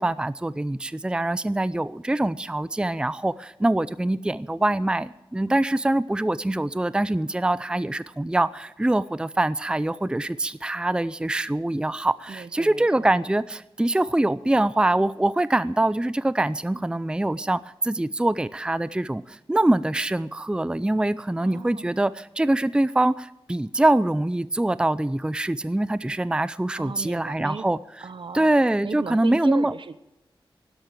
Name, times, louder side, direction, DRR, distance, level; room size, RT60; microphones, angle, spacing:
voice 1, 0.0-27.8 28.3-29.7, right 1 dB, 10° right, 16 dB, 0.5 m, -24 dB
voice 2, 12.3-13.1 21.4-21.9 26.7-27.7 28.0-28.6 28.8-30.0, right 5 dB, 65° right, 14 dB, 0.9 m, -36 dB
12.5 x 11.5 x 9.0 m, 0.96 s
wide cardioid pair, 65°, 9 cm